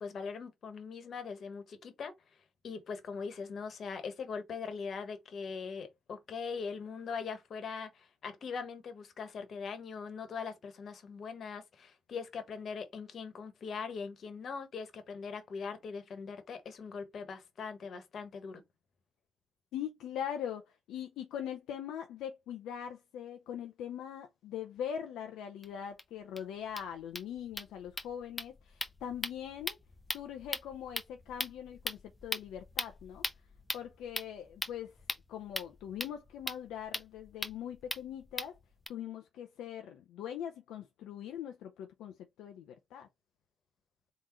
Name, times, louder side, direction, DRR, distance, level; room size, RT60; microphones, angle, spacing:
voice 1, 0.0-2.1 2.6-18.6, left 5 dB, 60° left, 1.2 m, -41 dB
voice 2, 19.7-29.8 30.1-33.2 33.7-34.9 35.3-38.6 38.9-43.1, left 9 dB, 75° left, 0.6 m, -42 dB
sound 1, 25.6-25.7 26.0-26.1 26.4-26.5 26.7-38.9, left 2 dB, 20° left, 1.0 m, -41 dB
4.0 x 3.8 x 3.0 m
hypercardioid pair, 50°, 0 cm